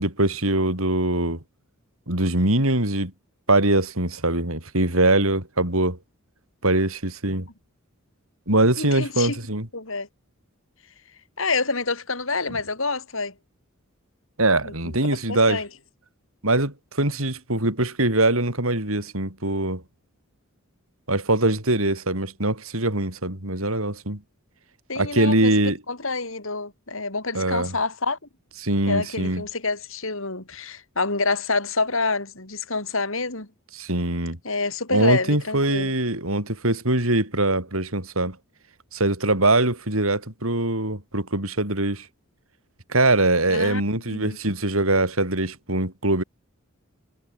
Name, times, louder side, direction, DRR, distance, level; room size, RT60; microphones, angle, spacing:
voice 1, 0.0-1.4 2.1-3.1 3.5-6.0 6.6-7.5 8.5-9.7 14.4-15.6 16.4-19.8 21.1-24.2 24.9-25.8 27.3-27.7 28.6-29.4 33.8-34.4 34.9-38.4 38.9-42.1 42.9-46.2, right 2 dB, 70° right, 6.8 m, -22 dB
voice 2, 8.8-9.4 9.7-10.1 11.4-13.3 14.6-15.7 24.9-28.2 28.9-33.5 34.4-35.9 43.5-43.8 44.1-44.4, left 3 dB, 65° left, 4.5 m, -27 dB
head